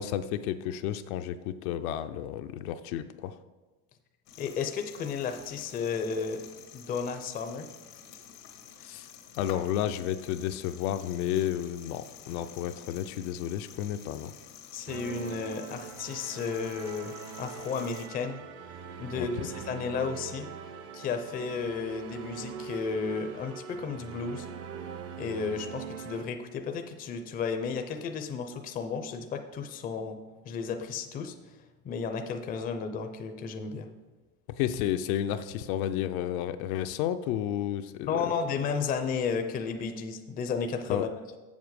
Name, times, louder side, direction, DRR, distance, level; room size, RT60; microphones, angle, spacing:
voice 1, 0.0-3.3 8.8-9.1 9.4-14.3 19.2-19.5 34.6-38.1 40.9-41.1, left 11 dB, 65° left, 9 dB, 0.6 m, -31 dB
sound 1, 4.3-18.1, left 8 dB, 90° left, 1.5 m, -50 dB
voice 2, 4.4-6.4 6.7-7.7 14.7-18.4 19.0-20.5 20.9-24.5 25.2-30.2 30.4-31.3 31.8-33.9 38.1-41.1, left 5 dB, 20° left, 7 dB, 0.5 m, -33 dB
sound 2, 14.9-26.2, right 6 dB, 35° right, 0.6 m, -42 dB
7.3 x 7.0 x 4.7 m, 1.2 s
supercardioid pair, 135°, 46 cm